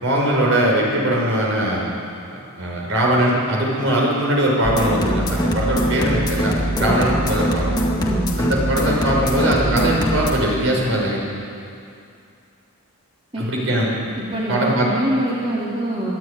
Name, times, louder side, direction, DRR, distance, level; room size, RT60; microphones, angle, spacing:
voice 1, 0.0-1.9 2.3-7.7 8.4-11.3 13.4-13.9 14.5-14.9, right 1 dB, 65° right, -2 dB, 5.6 m, -20 dB
sound 1, 4.6-10.3, equal, 20° left, 2.0 m, -22 dB
voice 2, 6.8-7.1 8.0-8.3 13.3-13.7 14.2-16.1, right 1 dB, 25° right, -6 dB, 2.8 m, -25 dB
25.0 x 11.5 x 9.7 m, 2.5 s
head